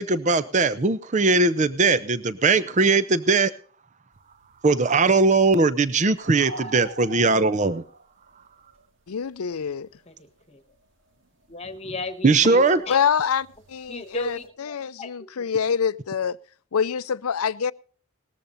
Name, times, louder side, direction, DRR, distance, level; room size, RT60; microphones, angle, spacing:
voice 1, 0.0-3.5 4.6-7.8 12.2-12.8, right 3 dB, 35° right, 0.6 m, -20 dB
sound 1, 4.1-10.3 10.5-14.5, right 2 dB, 60° right, 2.2 m, -45 dB
voice 2, 9.1-9.9 12.9-16.4 16.7-17.7, left 7 dB, 80° left, 0.5 m, -26 dB
voice 3, 10.1-10.6 11.5-13.0 13.9-15.1 15.4-15.5, left 2 dB, 30° left, 1.3 m, -36 dB
19.0 x 14.0 x 2.6 m
head